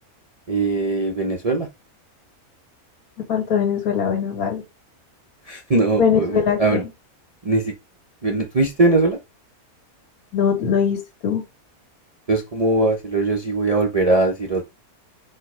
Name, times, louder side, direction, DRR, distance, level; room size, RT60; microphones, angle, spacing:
voice 1, 0.5-1.7 5.5-6.8 7.4-7.7 8.2-9.2 12.3-14.6, right 2 dB, 50° right, 0.4 m, -20 dB
voice 2, 3.3-4.6 6.0-6.8 10.3-11.4, left 7 dB, 80° left, 1.8 m, -21 dB
4.5 x 2.1 x 4.6 m
omnidirectional pair, 1.5 m